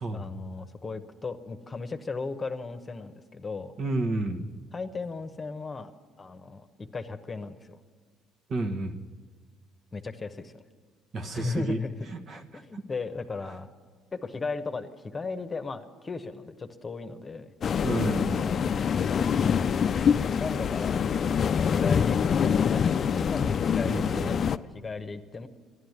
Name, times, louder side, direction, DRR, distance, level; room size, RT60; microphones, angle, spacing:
voice 1, 0.1-3.7 4.7-7.8 9.9-10.6 11.3-11.9 12.5-13.7 14.1-17.5 18.5-19.0 20.4-21.0 21.7-25.5, left 4 dB, 30° left, 8 dB, 1.0 m, -36 dB
voice 2, 3.8-4.5 8.5-9.0 11.1-11.8 12.1-12.8 17.8-18.4 23.8-24.2, right 2 dB, 50° right, 5 dB, 1.3 m, -31 dB
sound 1, 17.6-24.6, left 7 dB, 50° left, 0.4 m, -25 dB
13.0 x 11.0 x 9.5 m, 1.5 s
supercardioid pair, 75°, 0 cm